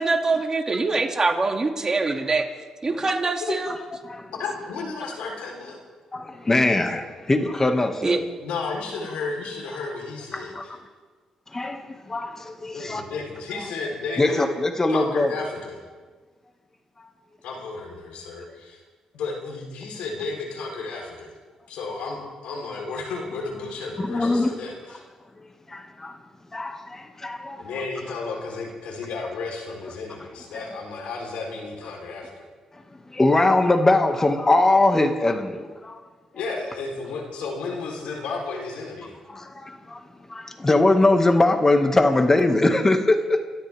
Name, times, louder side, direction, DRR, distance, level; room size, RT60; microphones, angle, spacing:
voice 1, 0.0-2.5 2.8-3.7 8.0-8.2, right 3 dB, 30° right, 2.5 m, -23 dB
voice 2, 4.3-5.8 8.4-10.7 12.7-14.4 14.9-15.8 17.4-18.8 19.1-21.3 21.7-25.0 27.6-32.4 36.3-39.1, left 4 dB, 90° left, 4.0 m, -33 dB
voice 3, 6.1-8.2 10.3-10.6 11.5-13.0 14.2-15.3 24.0-24.5 25.7-26.2 26.5-27.6 30.1-30.2 30.5-30.7 32.7-32.8 33.1-36.0 39.3-40.0 40.3-43.4, left 2 dB, 25° left, 2.1 m, -21 dB
29.5 x 13.0 x 3.6 m
cardioid pair, 70°, 2 cm